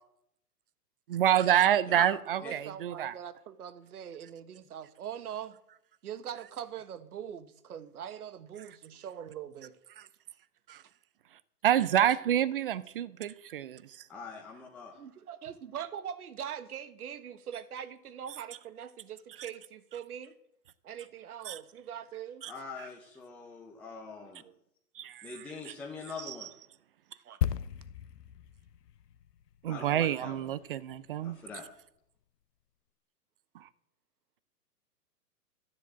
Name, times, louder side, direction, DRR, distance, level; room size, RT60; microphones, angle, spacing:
voice 1, 1.1-3.2 10.0-10.1 10.7-10.8 11.6-13.8 21.5-21.6 22.4-22.5 25.0-25.3 25.7-25.8 26.3-26.4 29.6-31.4 33.6-33.7, right 11 dB, 35° right, 0.5 m, -28 dB
voice 2, 2.3-5.6 6.0-9.8 14.9-20.3 20.8-22.4 24.2-24.5 27.2-27.4, right 9 dB, 70° right, 1.5 m, -42 dB
voice 3, 14.1-14.9 22.5-24.4 25.2-26.5 29.7-30.6 31.2-31.7, left 5 dB, 5° left, 0.6 m, -43 dB
sound 1, 27.4-31.1 31.3-31.5, left 10 dB, 85° left, 0.9 m, -36 dB
13.0 x 7.6 x 8.2 m
hypercardioid pair, 145°, 47 cm